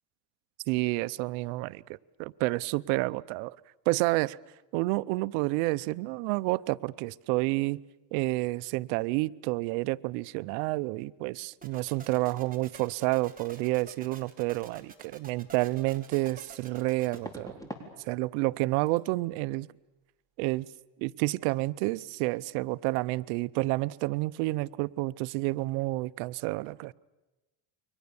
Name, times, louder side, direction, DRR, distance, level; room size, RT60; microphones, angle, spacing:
voice 1, 0.7-1.8 2.2-3.6 3.9-4.4 4.7-7.8 8.1-17.7 18.1-19.7 20.4-20.7 21.0-26.9, right 21 dB, 80° right, 0.8 m, -29 dB
sound 1, 11.6-17.2, right 5 dB, 20° right, 3.4 m, -49 dB
sound 2, 17.1-17.9 18.2-18.6 18.9-19.0 22.0-22.1 22.3-22.6 22.9-23.0, equal, 5° left, 4.0 m, -44 dB
29.0 x 23.5 x 7.0 m
cardioid pair, 115°, 46 cm